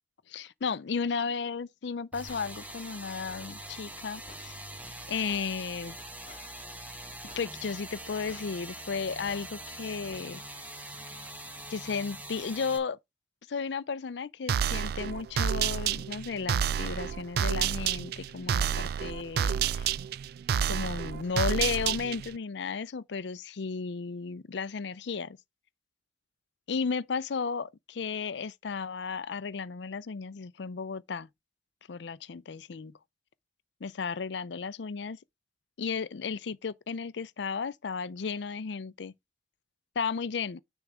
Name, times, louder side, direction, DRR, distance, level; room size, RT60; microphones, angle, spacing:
voice 1, 0.3-4.6 5.1-6.0 7.4-10.4 11.7-13.0 13.5-19.9 20.7-25.4 26.7-31.3 31.9-32.9 33.8-35.2 35.8-39.1 40.0-40.6, left 5 dB, 65° left, 0.5 m, -34 dB
sound 1, 2.1-12.8, right 1 dB, 10° right, 1.1 m, -43 dB
sound 2, 2.3-2.5 3.3-3.5 4.3-4.5 5.3-5.5 6.3-6.5 7.3-7.5 8.3-8.5 9.3-9.5, left 3 dB, 30° left, 1.4 m, -52 dB
sound 3, 14.5-22.4, right 8 dB, 55° right, 0.3 m, -29 dB
6.4 x 3.5 x 6.0 m
head